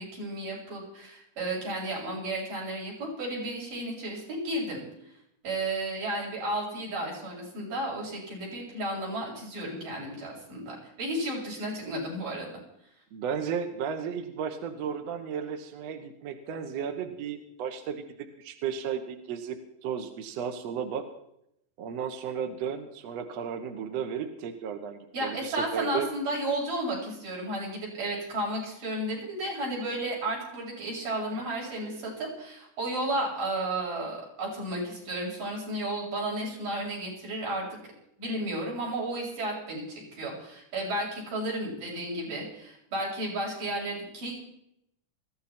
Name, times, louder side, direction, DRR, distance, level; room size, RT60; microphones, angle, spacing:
voice 1, 0.0-4.8 5.4-12.5 25.1-37.8 38.2-44.4, right 1 dB, 80° right, -3 dB, 8.4 m, -33 dB
voice 2, 13.1-18.0 18.4-21.1 21.8-26.1 31.3-31.5, right 7 dB, 60° right, 6 dB, 2.2 m, -34 dB
20.5 x 16.0 x 4.4 m, 0.78 s
omnidirectional pair, 3.7 m